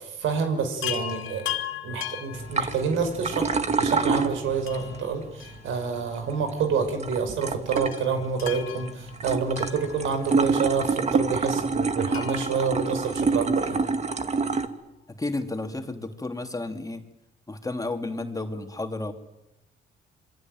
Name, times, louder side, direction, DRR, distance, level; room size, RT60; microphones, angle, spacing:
voice 1, 0.0-1.6 1.8-13.8, right 5 dB, 80° right, 7 dB, 5.6 m, -28 dB
Chime, 0.8-3.2 4.7-6.2 6.5-6.6 7.8-10.5 12.1-13.7 15.3-15.4 15.6-15.7, left 11 dB, 90° left, 2.1 m, -38 dB
sound 1, 2.3-14.7, right 4 dB, 35° right, 2.1 m, -28 dB
voice 2, 15.2-17.0 17.5-19.1, left 2 dB, 15° left, 5 dB, 3.0 m, -32 dB
27.5 x 22.5 x 9.3 m, 0.89 s
cardioid pair, 90°, 20 cm